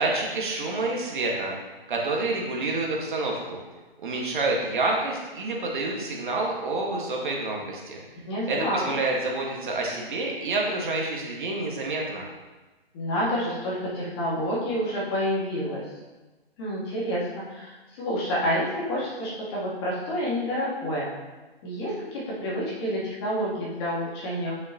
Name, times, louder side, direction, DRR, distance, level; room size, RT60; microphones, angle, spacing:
voice 1, 0.0-1.5 1.9-3.6 4.0-8.0 8.5-12.2, right 2 dB, 55° right, -1 dB, 1.7 m, -28 dB
voice 2, 8.3-9.0 12.9-15.8 16.6-21.1 21.6-24.5, equal, 25° left, -6 dB, 2.0 m, -28 dB
8.5 x 6.2 x 2.9 m, 1.2 s
hypercardioid pair, 160°, 30 cm